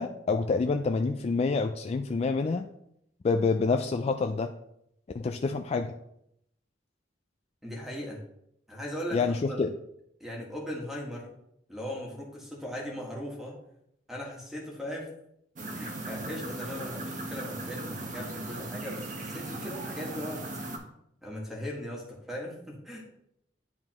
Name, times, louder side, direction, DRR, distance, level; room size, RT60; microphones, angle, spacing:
voice 1, 0.0-2.7 3.2-4.5 5.1-5.9 9.1-9.7, left 4 dB, 35° left, 6 dB, 0.3 m, -27 dB
voice 2, 7.6-8.2 8.7-9.7 10.2-11.3 11.7-13.6 14.1-15.1 15.7-20.4 21.2-23.0, equal, ahead, -3 dB, 1.6 m, -38 dB
sound 1, 15.5-20.8, right 2 dB, 45° right, 1.0 m, -38 dB
10.5 x 3.8 x 3.0 m, 0.76 s
head